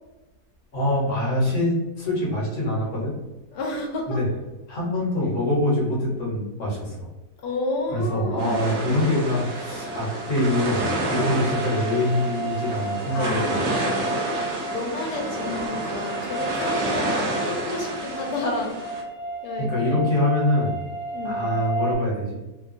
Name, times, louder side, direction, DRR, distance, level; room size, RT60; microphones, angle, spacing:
voice 1, 0.7-3.1 4.1-4.3 4.7-7.1 7.9-13.4 19.6-20.8 21.2-22.4, left 1 dB, 50° left, -5 dB, 1.0 m, -24 dB
voice 2, 3.5-4.2 7.4-8.7 13.1-18.8 19.4-20.0 21.1-21.5, left 2 dB, 75° left, 1 dB, 1.1 m, -31 dB
sound 1, 8.4-19.0, right 1 dB, 80° right, 0.6 m, -29 dB
sound 2, 8.8-22.0, right 2 dB, 45° right, 1.3 m, -33 dB
3.1 x 2.2 x 2.4 m, 1.1 s
omnidirectional pair, 1.9 m